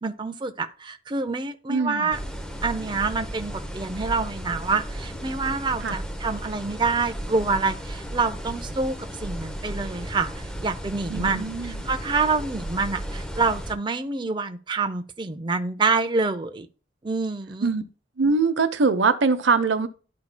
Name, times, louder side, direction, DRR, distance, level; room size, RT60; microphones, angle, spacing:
voice 1, 0.0-2.2 2.6-9.0 9.2-16.7 17.0-17.7, right 4 dB, 25° right, 0.5 m, -27 dB
voice 2, 1.7-2.1 5.8-6.0 11.1-11.8 17.6-17.8 18.2-19.9, right 4 dB, 85° right, 0.8 m, -22 dB
sound 1, 2.1-13.7, equal, 5° left, 0.7 m, -35 dB
11.5 x 4.7 x 2.2 m
head